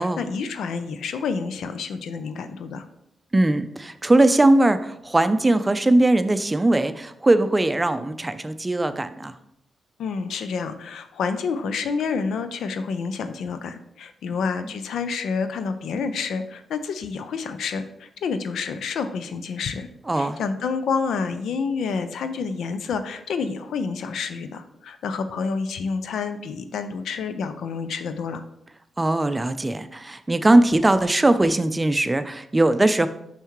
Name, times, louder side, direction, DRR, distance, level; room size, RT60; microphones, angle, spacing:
voice 1, 0.0-2.9 10.0-19.9 20.1-28.4, left 5 dB, 75° left, 10 dB, 0.4 m, -28 dB
voice 2, 3.3-9.3 20.1-20.4 29.0-33.1, right 2 dB, 25° right, 11 dB, 0.5 m, -20 dB
5.6 x 5.5 x 3.1 m, 0.77 s
supercardioid pair, 45°, 0 cm